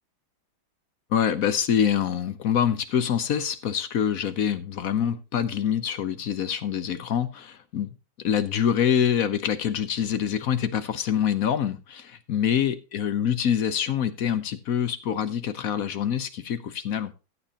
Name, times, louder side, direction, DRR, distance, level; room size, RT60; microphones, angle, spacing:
voice 1, 1.1-7.9 8.2-17.1, left 8 dB, 60° left, 0.9 m, -25 dB
14.0 x 9.1 x 2.9 m
omnidirectional pair, 2.2 m